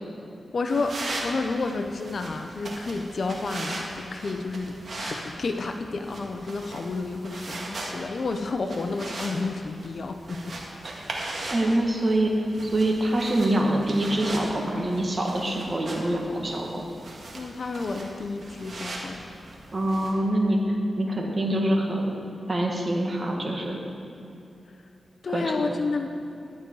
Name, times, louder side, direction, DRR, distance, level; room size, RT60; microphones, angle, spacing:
voice 1, 0.5-10.5 11.6-11.8 17.3-19.2 25.2-26.1, left 3 dB, 55° left, 5 dB, 0.7 m, -30 dB
sound 1, 0.7-20.1, right 2 dB, 55° right, 1.9 m, -39 dB
voice 2, 11.5-16.8 19.7-20.6 21.0-22.2 22.5-23.8 25.3-25.7, right 1 dB, 35° right, 0 dB, 1.9 m, -25 dB
12.0 x 9.4 x 4.8 m, 2.7 s
wide cardioid pair, 95°, 0 cm